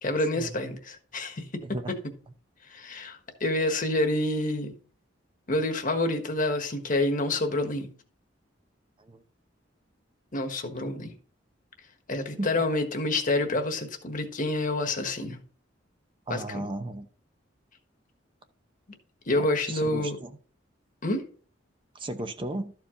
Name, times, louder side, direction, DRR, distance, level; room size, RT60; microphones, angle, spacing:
voice 1, 0.0-1.6 1.9-2.0 2.7-4.8 5.5-7.9 10.3-11.2 12.1-15.4 16.3-16.6 19.3-20.2 21.0-21.2, left 2 dB, 45° left, 1.4 m, -28 dB
voice 2, 1.6-1.9 9.0-9.2 12.4-12.5 16.3-17.1 19.4-20.4 21.9-22.7, right 2 dB, 25° right, 0.7 m, -35 dB
13.0 x 4.7 x 3.8 m
head